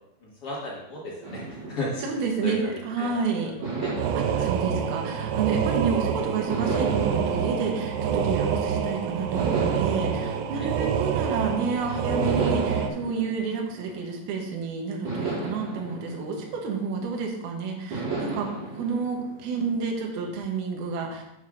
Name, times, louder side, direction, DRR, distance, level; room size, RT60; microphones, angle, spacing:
voice 1, 0.2-2.0 2.4-3.9 4.3-4.5 10.6-10.7 18.4-18.5, left 1 dB, 70° left, -6 dB, 1.4 m, -35 dB
sound 1, 1.2-3.0 3.6-5.9 6.5-8.7 9.3-11.6 12.2-14.4 15.0-17.3 17.9-20.2, right 3 dB, 45° right, 3.2 m, -35 dB
voice 2, 2.0-3.5 4.1-21.2, right 5 dB, 70° right, 1 dB, 2.8 m, -30 dB
sound 2, 4.0-12.9, right 7 dB, 85° right, 2.9 m, -26 dB
7.6 x 3.7 x 6.3 m, 0.87 s
omnidirectional pair, 5.1 m